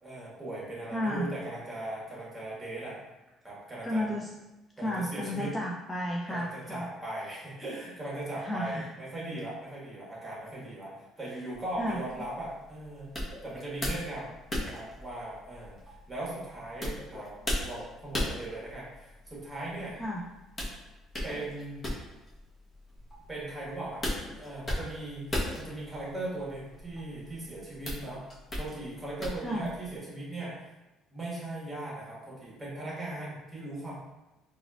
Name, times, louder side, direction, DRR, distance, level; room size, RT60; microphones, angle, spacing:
voice 1, 0.0-3.0 3.4-4.2 4.8-5.5 6.3-13.1 13.4-14.3 14.6-20.0 21.2-21.8 23.3-28.2 28.5-30.7 31.1-34.0, right 1 dB, 15° right, -6 dB, 1.3 m, -39 dB
voice 2, 0.9-1.3 3.8-4.3 4.8-6.9 8.4-8.9 11.8-12.0 20.0-20.3 29.4-29.7, equal, 15° left, -3 dB, 0.3 m, -32 dB
sound 1, 11.5-30.0, left 1 dB, 30° left, 1.0 m, -38 dB
4.0 x 2.5 x 2.3 m, 1.0 s
cardioid pair, 105°, 0 cm